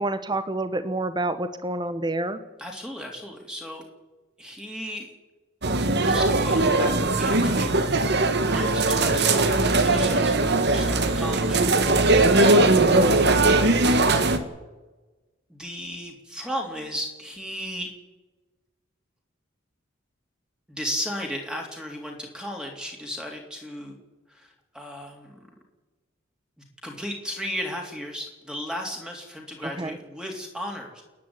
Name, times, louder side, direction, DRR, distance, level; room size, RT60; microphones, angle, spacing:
voice 1, 0.0-2.4 29.8-30.0, right 2 dB, 20° right, 11 dB, 1.1 m, -28 dB
voice 2, 2.6-3.9 4.4-5.1 6.0-11.6 12.1-12.8 13.1-14.0 15.5-17.9 20.7-24.0 24.3-25.5 26.8-31.0, equal, 5° right, 1 dB, 3.2 m, -35 dB
sound 1, 5.6-14.4, right 2 dB, 55° right, 1.7 m, -20 dB
29.5 x 10.5 x 9.8 m, 1.2 s
head